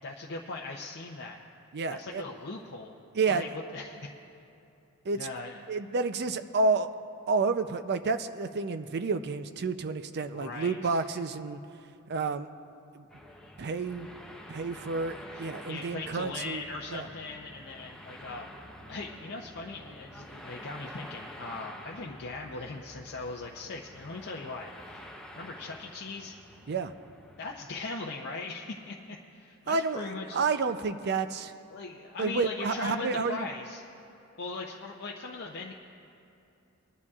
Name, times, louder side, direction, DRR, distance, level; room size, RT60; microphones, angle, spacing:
voice 1, 0.0-1.4 1.9-3.0 3.2-4.1 5.1-5.6 10.3-11.0 15.3-18.5 18.9-25.1 25.4-26.4 27.4-30.4 31.7-33.8 34.4-35.7, left 3 dB, 55° left, -1 dB, 0.7 m, -39 dB
voice 2, 1.7-2.2 3.1-3.4 5.1-5.2 5.7-6.9 7.3-11.6 12.1-12.5 12.9-13.0 13.6-14.1 14.5-16.6 16.9-17.1 26.7-26.9 29.7-30.0 30.3-31.5 32.2-33.4, right 4 dB, 50° right, 10 dB, 0.5 m, -30 dB
sound 1, 13.1-27.6, left 1 dB, 5° left, 0.8 m, -48 dB
22.0 x 11.0 x 2.4 m, 2.8 s
head